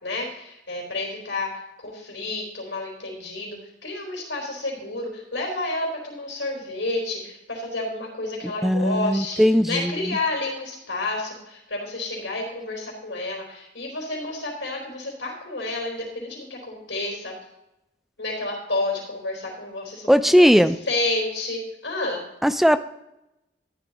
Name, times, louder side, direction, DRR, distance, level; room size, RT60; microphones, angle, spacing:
voice 1, 0.0-1.5 1.8-17.3 18.2-20.5 20.9-22.2, left 2 dB, 80° left, -2 dB, 3.8 m, -30 dB
voice 2, 8.6-10.2 20.1-20.8 22.4-22.8, equal, ahead, 12 dB, 0.4 m, -18 dB
13.5 x 11.5 x 2.9 m, 0.90 s
head